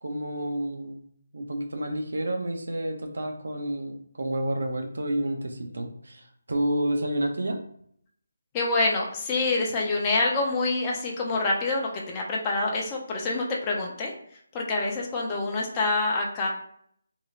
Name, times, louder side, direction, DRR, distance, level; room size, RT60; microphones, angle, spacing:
voice 1, 0.0-1.0 1.3-7.6, right 1 dB, 80° right, 4 dB, 0.6 m, -30 dB
voice 2, 8.5-14.1 14.5-16.5, left 3 dB, 20° left, -2 dB, 0.5 m, -26 dB
2.8 x 2.8 x 2.5 m, 0.66 s
figure-of-eight pair, 160°, 0 cm